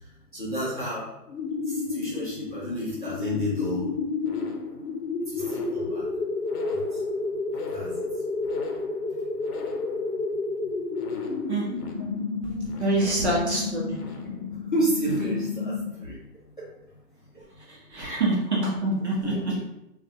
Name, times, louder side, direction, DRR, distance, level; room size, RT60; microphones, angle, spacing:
voice 1, 0.3-1.0 1.9-3.9 5.3-6.0 6.7-6.8 7.7-7.9 13.0-13.1 14.7-15.7 16.0-16.1 18.0-18.2 19.2-19.6, right 1 dB, 30° left, -8 dB, 0.6 m, -30 dB
sound 1, 1.3-16.1, left 3 dB, 65° left, 0.8 m, -31 dB
voice 2, 12.8-13.9 17.9-19.3, right 2 dB, 40° right, -4 dB, 0.9 m, -25 dB
3.7 x 2.4 x 2.7 m, 0.89 s
hypercardioid pair, 175°, 49 cm